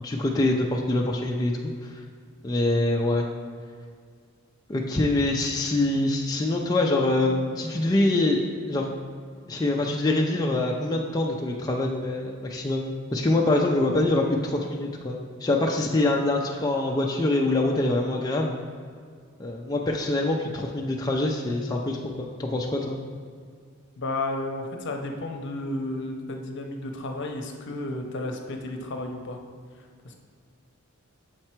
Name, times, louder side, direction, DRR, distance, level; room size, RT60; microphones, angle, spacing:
voice 1, 0.0-1.5 1.8-2.0 2.4-3.3 4.7-8.9 9.5-18.5 19.4-23.0, left 2 dB, 20° left, 0 dB, 0.4 m, -25 dB
voice 2, 24.0-29.4 30.0-30.1, left 2 dB, 60° left, 3 dB, 0.7 m, -32 dB
6.5 x 4.4 x 4.4 m, 2.1 s
head